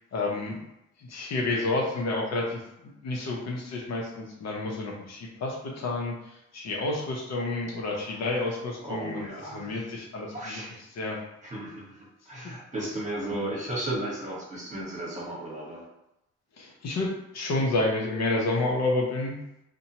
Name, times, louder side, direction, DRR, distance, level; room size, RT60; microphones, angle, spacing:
voice 1, 0.1-0.6 1.0-10.6 10.9-11.2 16.6-19.3, left 2 dB, 60° left, -1 dB, 0.7 m, -30 dB
voice 2, 8.8-9.8 10.3-10.7 11.4-15.8, right 1 dB, 25° right, -4 dB, 1.1 m, -35 dB
2.7 x 2.2 x 2.8 m, 0.86 s
cardioid pair, 90°, 30 cm